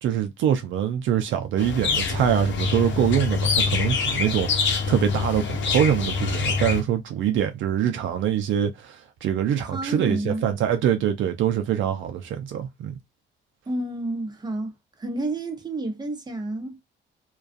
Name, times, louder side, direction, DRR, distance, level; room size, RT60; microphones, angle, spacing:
voice 1, 0.0-9.0 9.2-13.0, right 9 dB, 75° right, 0.5 m, -24 dB
sound 1, 1.6-6.8, left 5 dB, 70° left, 0.7 m, -25 dB
voice 2, 9.7-10.5 13.7-14.7 15.0-16.9, right 2 dB, 20° right, 0.8 m, -30 dB
2.3 x 2.3 x 2.5 m
cardioid pair, 90°, 20 cm